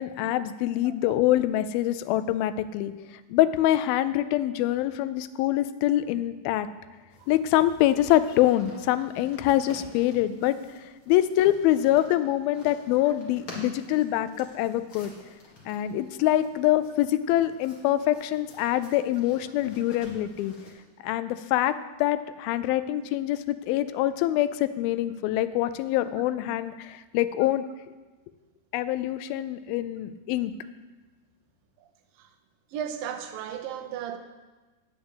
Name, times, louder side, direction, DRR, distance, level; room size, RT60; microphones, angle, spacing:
voice 1, 0.0-2.9 3.3-6.7 7.3-15.1 15.7-20.5 21.0-27.6 28.7-30.5, left 13 dB, 90° left, 14 dB, 2.4 m, -25 dB
sound 1, 7.1-20.7, left 2 dB, 45° left, 2.3 m, -50 dB
voice 2, 32.7-34.2, right 9 dB, 80° right, 7 dB, 2.5 m, -34 dB
8.8 x 6.6 x 8.2 m, 1.2 s
omnidirectional pair, 4.2 m